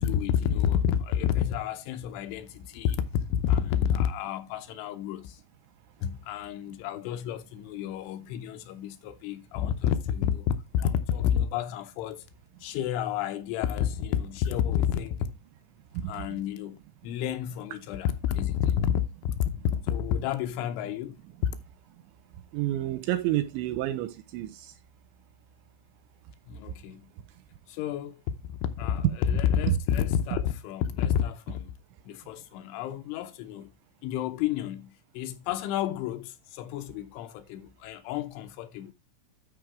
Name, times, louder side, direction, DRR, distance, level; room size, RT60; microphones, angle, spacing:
voice 1, 0.0-5.4 6.0-12.3 12.6-15.3 16.0-21.2 26.5-27.1 27.7-31.7 32.1-33.7 34.0-38.9, left 9 dB, 80° left, 3.1 m, -30 dB
voice 2, 22.5-24.7 29.7-29.8, right 14 dB, 80° right, 2.9 m, -29 dB
12.5 x 5.0 x 3.4 m
omnidirectional pair, 5.7 m